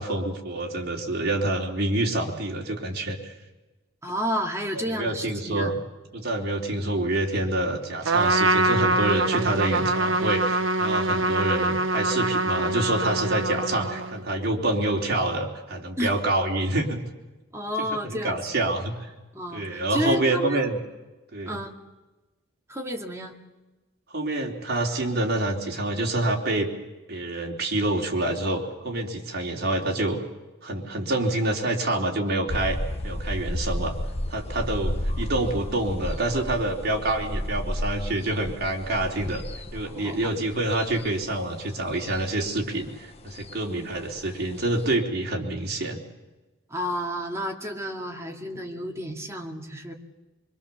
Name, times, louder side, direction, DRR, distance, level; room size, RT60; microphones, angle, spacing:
voice 1, 0.0-3.3 4.7-5.8 6.1-17.0 17.8-19.1 19.5-20.8 21.3-21.6 24.1-26.7 27.1-30.2 30.6-32.8 33.0-33.9 34.3-39.4 39.7-46.0, right 2 dB, 50° right, 0 dB, 3.7 m, -27 dB
voice 2, 4.0-5.8 16.0-16.1 17.5-18.4 19.3-20.6 21.5-21.8 22.7-23.4 39.8-40.3 43.6-43.9 46.7-49.9, equal, 15° right, 2 dB, 2.3 m, -31 dB
Trumpet, 8.0-14.2, right 2 dB, 75° right, 1.2 m, -24 dB
sound 1, 32.5-44.9, left 1 dB, 30° left, 1.0 m, -33 dB
24.5 x 24.5 x 7.1 m, 1.1 s
head